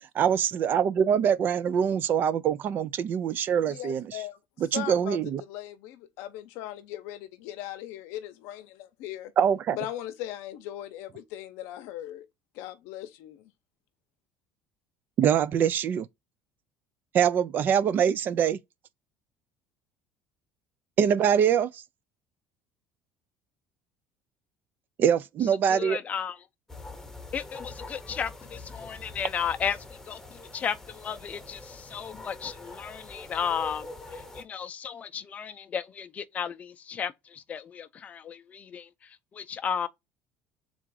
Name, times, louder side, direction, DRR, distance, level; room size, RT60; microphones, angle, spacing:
voice 1, 0.1-4.2 4.7-5.4 9.4-9.8 15.2-16.1 17.1-18.6 21.0-21.8 25.0-26.0, right 8 dB, 45° right, 0.3 m, -24 dB
voice 2, 3.6-4.4 4.7-5.2 5.5-9.3 9.7-12.3 12.5-13.5, left 13 dB, 80° left, 0.6 m, -39 dB
voice 3, 25.7-26.4 27.3-39.9, left 7 dB, 30° left, 0.5 m, -34 dB
sound 1, 26.7-34.4, left 2 dB, 10° left, 0.8 m, -44 dB
3.8 x 2.4 x 4.6 m
cardioid pair, 125°, 5 cm